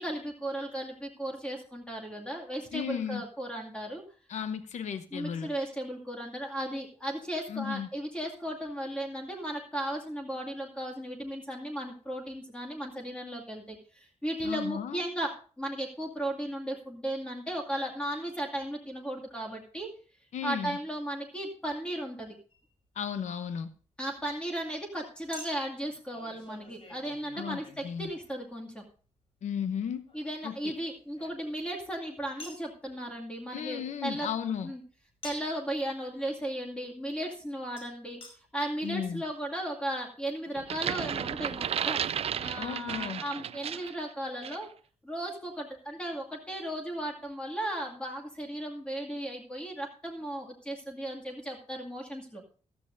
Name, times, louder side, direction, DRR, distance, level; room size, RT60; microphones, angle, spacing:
voice 1, 0.0-4.0 5.1-19.9 20.4-22.3 24.0-28.8 30.1-34.3 34.6-34.8 35.2-38.2 38.5-42.0 42.3-44.7 45.0-52.4, right 1 dB, 10° left, 0 dB, 2.3 m, -36 dB
voice 2, 2.7-3.2 4.3-5.5 7.5-7.9 14.4-15.0 20.3-20.8 22.9-23.7 27.3-28.1 29.4-30.0 30.4-30.7 33.5-34.7 38.8-39.2 42.6-43.2, left 8 dB, 80° left, 10 dB, 0.8 m, -35 dB
Chink clink, 22.5-22.7 25.3-28.5 30.1-31.8 32.4-32.7 35.2-35.6 37.8-37.9 38.2-38.3 39.0-39.1 39.2-39.3, left 2 dB, 50° left, 4.6 m, -49 dB
sound 1, 40.6-44.0 44.4-44.6, right 9 dB, 55° right, 0.4 m, -33 dB
15.0 x 13.0 x 2.6 m, 0.38 s
wide cardioid pair, 155°, 12 cm